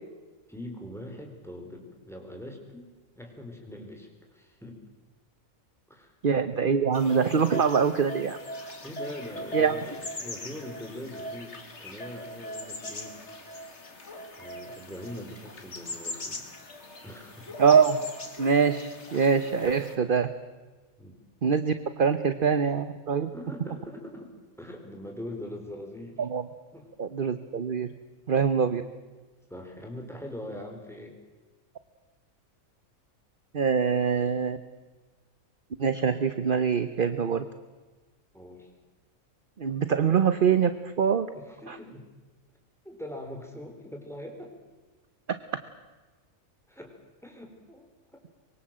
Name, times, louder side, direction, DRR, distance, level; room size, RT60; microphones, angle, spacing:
voice 1, 0.5-2.9 3.2-4.8 5.9-6.1 8.8-13.2 14.4-16.4 17.0-17.6 21.0-21.2 23.3-26.3 26.7-26.9 29.5-31.2 38.3-38.7 41.3-42.1 42.8-44.5 46.7-46.9 47.2-48.2, left 1 dB, ahead, 3 dB, 4.4 m, -42 dB
voice 2, 6.2-8.4 9.5-9.8 17.6-18.0 18.4-20.3 21.4-23.3 26.2-26.4 27.0-27.9 28.3-28.8 33.5-34.6 35.8-37.4 39.6-41.3 41.7-41.8, right 6 dB, 45° right, 11 dB, 1.0 m, -24 dB
sound 1, 6.9-20.0, left 1 dB, 55° left, 2.7 m, -40 dB
24.5 x 23.0 x 7.6 m, 1.3 s
omnidirectional pair, 1.5 m